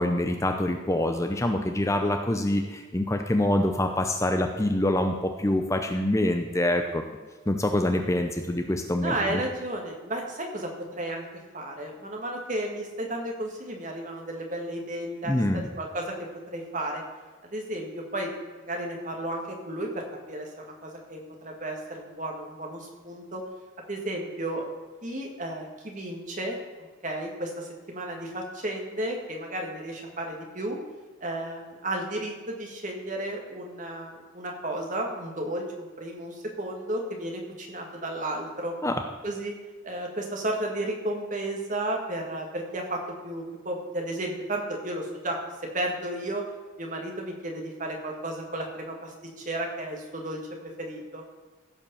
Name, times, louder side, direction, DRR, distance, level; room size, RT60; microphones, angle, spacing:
voice 1, 0.0-7.0 7.5-9.4 15.3-15.7 38.8-39.0, left 1 dB, 15° left, 5 dB, 0.6 m, -25 dB
voice 2, 9.0-11.2 11.5-17.0 17.4-18.3 18.6-23.4 23.9-24.7 25.0-30.8 31.2-38.7 39.2-39.5 39.8-45.4 45.7-46.4 46.8-51.2, right 1 dB, 40° right, 1 dB, 2.0 m, -33 dB
15.5 x 5.4 x 7.1 m, 1.3 s
head